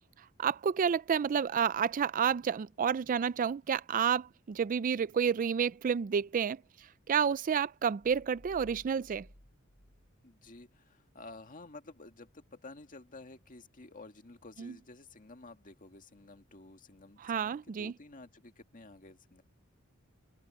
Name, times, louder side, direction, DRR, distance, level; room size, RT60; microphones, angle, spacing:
voice 1, 0.2-9.3 14.6-14.7 17.2-17.9, right 7 dB, 40° right, 0.3 m, -30 dB
sound 1, 8.0-10.8, equal, 85° left, 7.1 m, -57 dB
voice 2, 10.2-19.4, left 2 dB, 40° left, 1.9 m, -52 dB
head